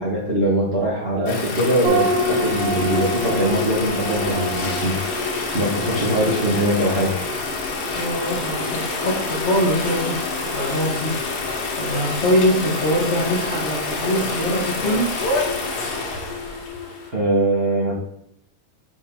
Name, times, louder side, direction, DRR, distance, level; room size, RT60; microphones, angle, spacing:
voice 1, 0.0-5.2 5.5-7.2 17.1-17.9, right 1 dB, 40° right, -7 dB, 0.9 m, -22 dB
sound 1, 1.3-17.1, left 3 dB, 85° left, 3.1 m, -27 dB
sound 2, 1.8-16.6, right 1 dB, 90° right, 3.5 m, -30 dB
voice 2, 7.9-11.1 11.7-15.1, equal, 70° left, -5 dB, 0.6 m, -23 dB
7.8 x 5.6 x 3.8 m, 0.75 s
omnidirectional pair, 3.9 m